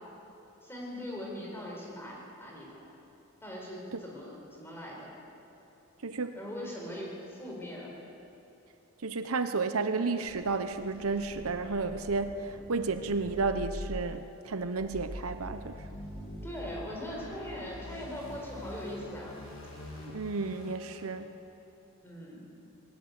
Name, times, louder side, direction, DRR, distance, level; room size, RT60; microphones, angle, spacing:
voice 1, 0.6-2.9 3.4-5.1 6.3-7.9 16.4-19.4 22.0-22.5, left 1 dB, 10° left, -3 dB, 4.8 m, -41 dB
voice 2, 6.0-6.4 9.0-15.8 20.0-21.3, right 4 dB, 75° right, 9 dB, 0.9 m, -32 dB
sound 1, 10.2-21.1, equal, 80° left, 6.9 m, -45 dB
20.5 x 18.0 x 8.2 m, 2.9 s
head